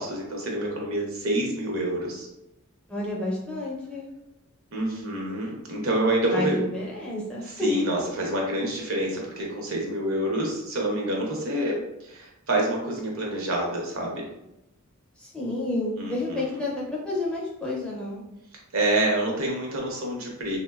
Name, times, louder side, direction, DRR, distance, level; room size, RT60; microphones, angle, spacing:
voice 1, 0.0-2.3 4.7-6.6 7.6-14.3 16.0-16.6 18.7-20.6, right 1 dB, 70° right, -1 dB, 0.7 m, -27 dB
voice 2, 2.9-4.1 6.3-7.5 15.2-18.2, left 2 dB, 5° left, -5 dB, 0.5 m, -30 dB
3.4 x 2.1 x 2.2 m, 0.87 s
head